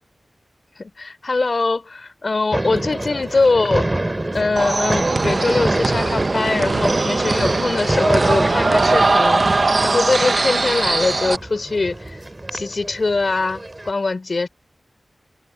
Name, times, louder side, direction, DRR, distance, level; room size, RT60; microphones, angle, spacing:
voice 1, 0.8-3.9 4.3-12.2 12.5-14.5, left 3 dB, 60° left, 3.8 m, -22 dB
sound 1, 2.5-13.9, right 1 dB, 25° right, 3.1 m, -27 dB
sound 2, 4.6-11.4, right 3 dB, 55° right, 1.1 m, -20 dB
wide cardioid pair, 60°, 0 cm